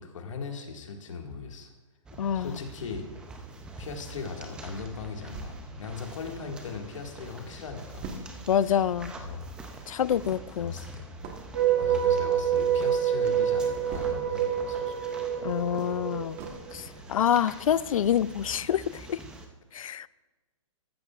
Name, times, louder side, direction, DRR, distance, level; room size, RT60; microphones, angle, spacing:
voice 1, 0.0-1.7 2.3-3.1 3.8-8.1 8.6-8.8 9.2-9.5 10.6-11.1 11.8-15.0, left 5 dB, 65° left, 3 dB, 1.9 m, -38 dB
sound 1, 2.1-19.5, right 3 dB, 5° right, 0.5 m, -46 dB
voice 2, 2.2-2.6 8.5-9.1 9.9-10.7 15.4-16.4 16.7-19.2 19.7-20.1, left 9 dB, 85° left, 19 dB, 0.4 m, -27 dB
sound 2, 5.3-6.9 7.3-7.4 7.5-14.6 14.9-17.1 17.5-17.6 18.0-18.1, right 3 dB, 25° right, 1.2 m, -45 dB
sound 3, 11.5-16.7, right 9 dB, 55° right, 3.7 m, -27 dB
14.0 x 13.0 x 2.4 m, 1.2 s
hypercardioid pair, 165°, 17 cm